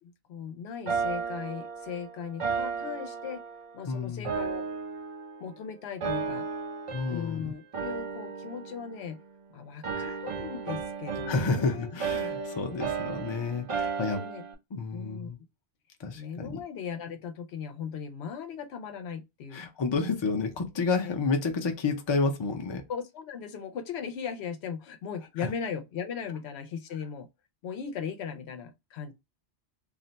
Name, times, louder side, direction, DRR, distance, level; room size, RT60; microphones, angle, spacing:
voice 1, 0.0-3.4 3.7-4.7 5.4-6.5 7.1-9.2 9.5-11.9 12.3-12.8 14.1-14.4 14.9-15.3 16.1-19.6 21.0-21.2 22.9-27.3 27.6-29.1, left 7 dB, 90° left, 0.9 m, -38 dB
sound 1, 0.9-3.8 4.2-5.6 6.0-7.4 7.7-9.5 9.8-14.5, right 5 dB, 45° right, 0.4 m, -34 dB
voice 2, 3.9-4.3 6.9-7.5 11.2-14.3 14.7-15.4 16.0-16.6 19.5-22.8, left 4 dB, 35° left, 0.5 m, -30 dB
2.5 x 2.1 x 3.9 m
omnidirectional pair, 1.1 m